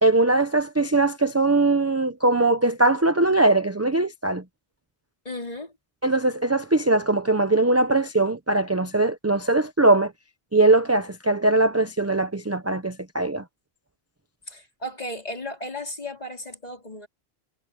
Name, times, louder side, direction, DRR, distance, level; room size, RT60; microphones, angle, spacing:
voice 1, 0.0-4.4 6.0-10.1 10.5-13.4, right 2 dB, 15° right, 0.7 m, -21 dB
voice 2, 5.3-5.7 14.5-17.1, left 1 dB, 40° left, 3.8 m, -35 dB
omnidirectional pair, 1.1 m